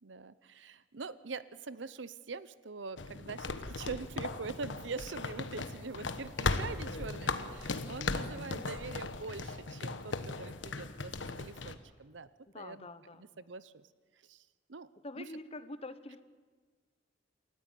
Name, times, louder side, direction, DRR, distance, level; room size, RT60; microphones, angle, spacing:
voice 1, 0.0-11.1 11.4-12.3 12.5-12.9 13.2-13.9 14.3-14.9 15.2-15.3, right 4 dB, 75° right, 16 dB, 0.8 m, -44 dB
sound 1, 3.0-11.8, left 3 dB, 80° left, 1.3 m, -37 dB
sound 2, 4.5-9.5, equal, ahead, 4.3 m, -60 dB
voice 2, 12.5-13.2 15.0-16.2, left 2 dB, 35° left, 12 dB, 1.1 m, -45 dB
28.5 x 14.0 x 9.2 m, 1.4 s
head